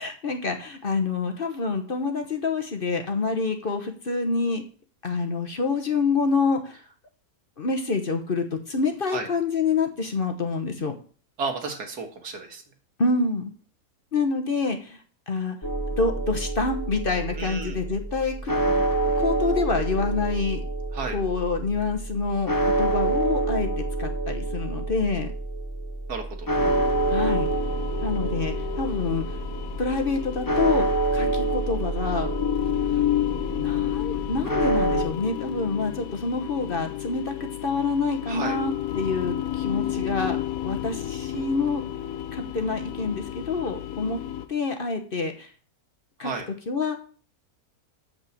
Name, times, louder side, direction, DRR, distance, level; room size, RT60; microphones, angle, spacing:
voice 1, 0.0-4.6 5.0-6.8 7.6-11.0 13.0-13.5 14.1-15.0 15.3-15.6 16.0-18.5 19.2-20.6 21.1-25.3 27.1-27.5 28.0-29.3 29.8-30.9 31.1-32.3 33.6-40.4 40.6-41.8 42.3-44.2 44.5-45.5 46.2-46.3 46.7-47.0, left 4 dB, 40° left, 5 dB, 1.1 m, -27 dB
voice 2, 11.4-12.6 17.4-17.8 20.9-21.2 26.1-26.5 38.3-38.6 46.2-46.5, right 4 dB, 90° right, 3 dB, 2.2 m, -32 dB
sound 1, 15.6-35.0, right 2 dB, 20° left, 0.6 m, -27 dB
sound 2, 26.6-44.5, left 13 dB, 65° left, 1.2 m, -31 dB
7.6 x 5.5 x 7.2 m, 0.41 s
omnidirectional pair, 1.6 m